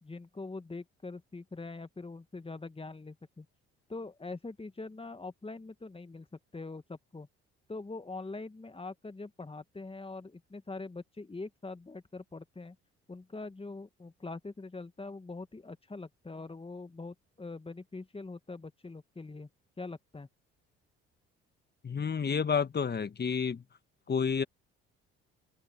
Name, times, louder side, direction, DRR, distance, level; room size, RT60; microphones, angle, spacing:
voice 1, 0.0-3.5 3.9-7.3 7.7-12.8 13.1-19.5 19.8-20.3, left 3 dB, 20° left, 1.9 m, -43 dB
voice 2, 21.8-23.6 24.1-24.4, left 6 dB, 35° left, 1.6 m, -30 dB
open air
hypercardioid pair, 60°, 30 cm